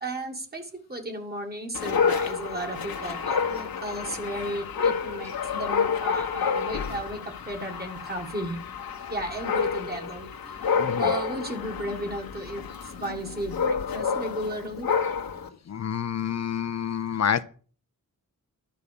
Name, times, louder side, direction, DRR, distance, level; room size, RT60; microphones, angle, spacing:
voice 1, 0.0-8.6 9.1-14.9, right 1 dB, 25° right, 2 dB, 2.0 m, -35 dB
Dog, 1.7-15.5, left 6 dB, 80° left, 1.7 m, -29 dB
voice 2, 10.8-11.1 15.7-17.4, left 8 dB, 50° left, 14 dB, 0.8 m, -28 dB
12.0 x 5.5 x 8.5 m, 0.40 s
wide cardioid pair, 180°, 35 cm